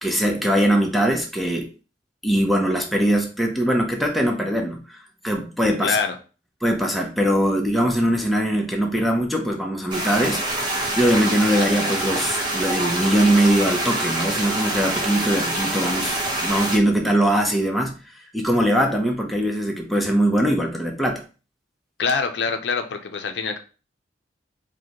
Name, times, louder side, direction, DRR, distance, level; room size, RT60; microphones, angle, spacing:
voice 1, 0.0-1.7 2.2-6.0 6.6-10.4 10.9-18.0 18.3-21.2, right 1 dB, ahead, 0 dB, 0.6 m, -21 dB
voice 2, 5.8-6.2 22.0-23.6, left 5 dB, 75° left, 7 dB, 0.5 m, -24 dB
sound 1, 9.9-16.8, right 1 dB, 25° right, 1.0 m, -25 dB
5.0 x 2.2 x 2.9 m, 0.35 s
head